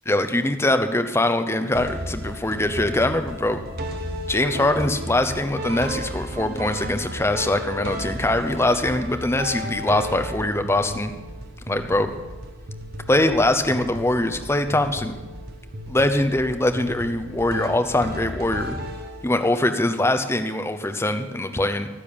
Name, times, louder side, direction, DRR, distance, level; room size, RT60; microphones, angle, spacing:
voice 1, 0.1-3.6 4.3-11.1 11.7-12.1 13.1-15.1 15.9-18.8 19.2-21.9, left 1 dB, 15° left, 7 dB, 0.7 m, -22 dB
sound 1, 1.7-19.6, equal, 50° right, 1.3 m, -34 dB
11.5 x 10.0 x 7.1 m, 1.2 s
head